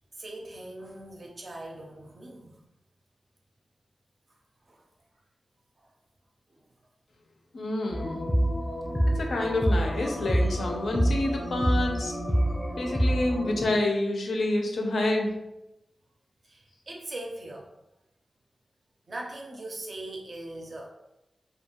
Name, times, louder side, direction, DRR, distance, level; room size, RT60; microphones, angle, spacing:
voice 1, 0.1-2.6 4.7-4.9 5.8-5.9 6.5-6.6 9.0-9.1 12.4-12.5 16.4-17.7 19.1-20.9, right 2 dB, 40° right, 0 dB, 0.4 m, -41 dB
voice 2, 7.5-8.3 9.1-12.1 12.8-15.3, left 2 dB, 75° left, 1 dB, 0.5 m, -28 dB
sound 1, 7.9-13.6, equal, 15° left, 0.5 m, -27 dB
2.3 x 2.2 x 2.9 m, 0.91 s
wide cardioid pair, 160°, 0 cm